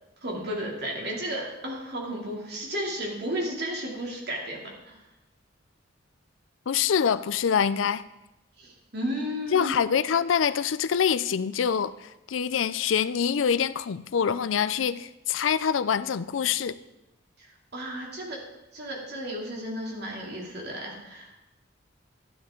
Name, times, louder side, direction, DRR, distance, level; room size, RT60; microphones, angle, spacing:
voice 1, 0.2-4.9 8.6-9.7 17.4-17.5 17.7-18.4 18.7-21.3, equal, 60° right, -2 dB, 2.8 m, -33 dB
voice 2, 6.7-8.0 9.5-16.8, left 7 dB, 85° left, 15 dB, 0.5 m, -25 dB
12.5 x 10.5 x 3.8 m, 0.96 s
head